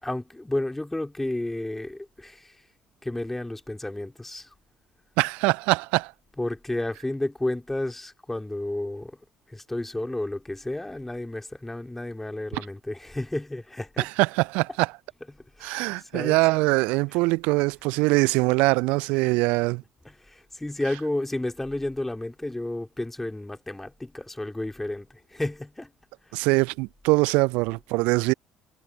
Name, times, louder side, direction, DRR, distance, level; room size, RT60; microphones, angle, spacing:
voice 1, 0.0-2.5 3.0-4.5 6.4-9.2 9.5-14.1 15.6-16.4 20.0-25.9, left 1 dB, 10° left, 4.4 m, -32 dB
voice 2, 5.2-6.1 12.5-12.7 14.0-14.9 15.6-19.8 26.3-28.3, right 25 dB, 65° right, 0.4 m, -23 dB
figure-of-eight pair, 50°, 2 cm